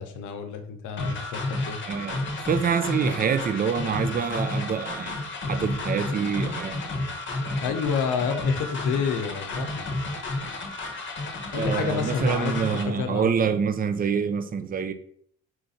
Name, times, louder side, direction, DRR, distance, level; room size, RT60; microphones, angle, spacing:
voice 1, 0.0-1.8 7.6-9.9 11.5-13.3, left 6 dB, 85° left, 0.7 m, -29 dB
sound 1, 1.0-12.8, left 2 dB, 40° left, 0.9 m, -31 dB
voice 2, 1.9-6.9 11.5-14.9, right 6 dB, 30° right, 0.4 m, -26 dB
4.5 x 2.5 x 4.0 m
cardioid pair, 90°, 30 cm